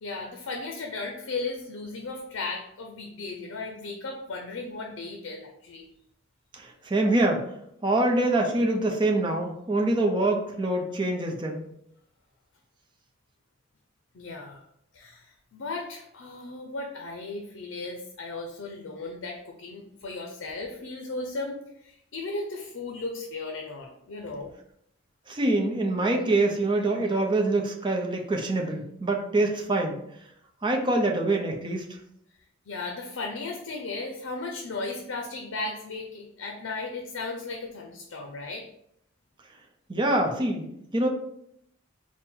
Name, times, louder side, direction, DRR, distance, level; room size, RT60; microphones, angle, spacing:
voice 1, 0.0-5.8 14.1-14.6 14.9-24.5 32.7-38.7, left 3 dB, 85° left, 2 dB, 0.5 m, -36 dB
voice 2, 6.5-7.4 7.8-11.6 25.3-30.0 30.6-31.8 39.9-41.1, right 2 dB, 25° right, 1 dB, 0.6 m, -25 dB
4.3 x 2.1 x 3.7 m, 0.73 s
head